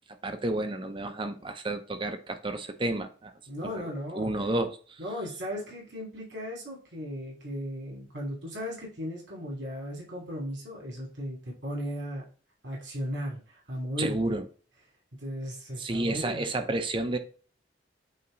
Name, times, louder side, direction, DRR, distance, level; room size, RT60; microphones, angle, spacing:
voice 1, 0.2-3.3 4.2-4.8 14.0-14.4 15.8-17.2, right 2 dB, 30° right, 0.7 m, -30 dB
voice 2, 3.5-4.3 5.0-12.2 12.6-14.4 15.2-16.4, equal, 80° right, 2.8 m, -36 dB
8.6 x 2.9 x 3.9 m
head